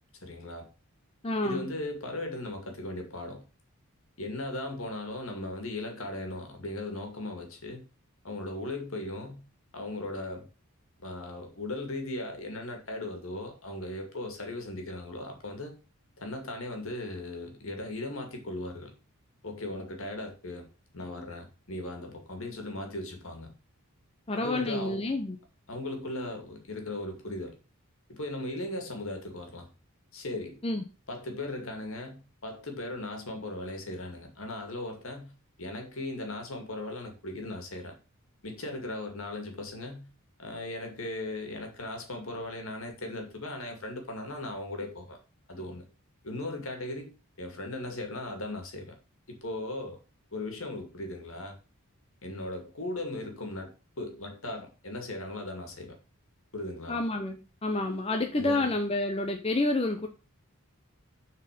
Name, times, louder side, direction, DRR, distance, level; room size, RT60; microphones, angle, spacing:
voice 1, 0.2-0.7 1.4-3.4 4.2-7.9 8.2-9.4 9.7-10.5 11.0-15.8 16.2-18.9 19.4-20.7 20.9-23.5 24.3-25.1 25.7-27.6 28.1-29.7 30.1-30.6 31.1-35.3 35.6-37.9 38.4-40.1 40.4-45.2 45.5-45.8 46.2-47.1 47.4-48.9 49.3-50.0 50.3-51.6 52.2-56.0 56.5-57.0 58.4-58.7, left 2 dB, 65° left, 2.3 m, -38 dB
voice 2, 1.2-1.6 24.3-25.3 30.6-30.8 56.9-60.1, left 2 dB, 25° left, 0.7 m, -29 dB
7.0 x 4.5 x 6.6 m
head